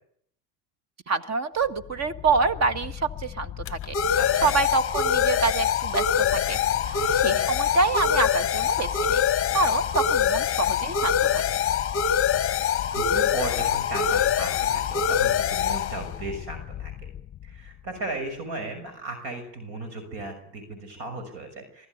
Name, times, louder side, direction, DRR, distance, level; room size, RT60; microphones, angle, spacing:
voice 1, 1.1-3.9 4.4-6.6 6.9-9.2 9.5-11.3, right 4 dB, 35° right, 12 dB, 1.7 m, -26 dB
sound 1, 2.0-17.4, left 8 dB, 25° left, 1.1 m, -25 dB
voice 2, 4.2-4.5 7.0-7.5 12.9-16.9 17.4-21.9, right 2 dB, 60° right, 7 dB, 6.2 m, -35 dB
23.5 x 14.5 x 9.4 m, 0.67 s
supercardioid pair, 105°, 48 cm